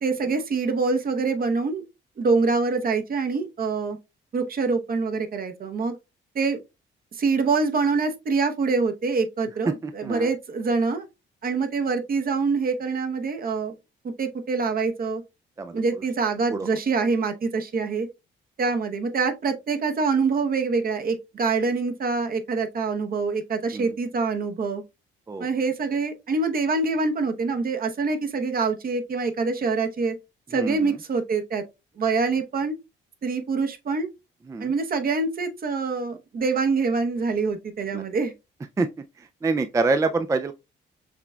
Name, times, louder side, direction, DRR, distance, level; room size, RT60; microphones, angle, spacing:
voice 1, 0.0-1.8 2.2-4.0 4.3-5.9 6.3-6.6 7.1-11.1 11.4-13.7 14.0-15.2 15.7-18.1 18.6-24.8 25.4-30.2 30.5-31.6 32.0-32.8 33.2-34.1 34.6-38.3, right 4 dB, 45° right, 0.9 m, -25 dB
voice 2, 30.5-30.9 34.5-34.7 37.9-38.0 38.8-38.9 39.4-40.5, right 3 dB, 15° right, 0.3 m, -25 dB
5.8 x 3.3 x 2.2 m
cardioid pair, 90°, 20 cm